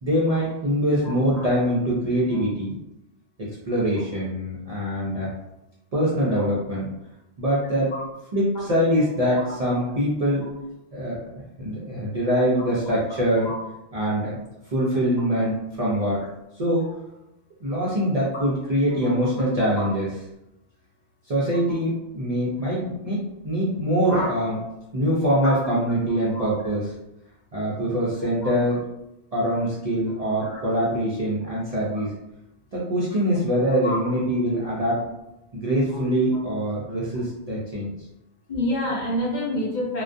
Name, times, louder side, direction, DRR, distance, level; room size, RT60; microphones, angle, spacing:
voice 1, 0.0-2.8 3.4-5.3 5.9-6.8 7.4-7.9 8.3-10.5 10.9-13.5 13.9-14.4 14.7-16.2 16.6-16.9 17.6-20.1 21.3-24.6 24.9-26.8 27.5-28.8 29.3-32.1 32.7-35.0 35.5-37.9, equal, 50° right, -7 dB, 0.5 m, -24 dB
voice 2, 1.0-1.5 2.3-2.4 7.9-8.0 9.4-9.5 12.6-12.7 13.4-13.6 18.3-18.4 24.1-24.3 26.3-26.4 28.4-28.5 30.4-30.6 33.8-34.0 35.9-36.0 38.5-40.0, left 1 dB, 50° left, -5 dB, 0.7 m, -28 dB
2.3 x 2.1 x 2.5 m, 0.89 s
omnidirectional pair, 1.1 m